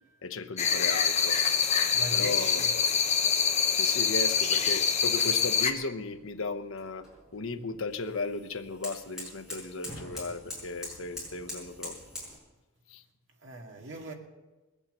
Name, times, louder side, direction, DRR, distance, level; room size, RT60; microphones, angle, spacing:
voice 1, 0.2-1.4 2.1-2.9 3.7-7.1 7.3-12.0 12.9-13.0, left 3 dB, 85° left, 0.9 m, -36 dB
sound 1, 0.6-5.7, left 6 dB, 35° left, 1.1 m, -25 dB
voice 2, 1.9-2.7 13.4-14.1, right 2 dB, 65° right, 2.2 m, -39 dB
sound 2, 5.9-12.4, left 1 dB, 5° right, 6.1 m, -45 dB
20.5 x 8.6 x 6.7 m
head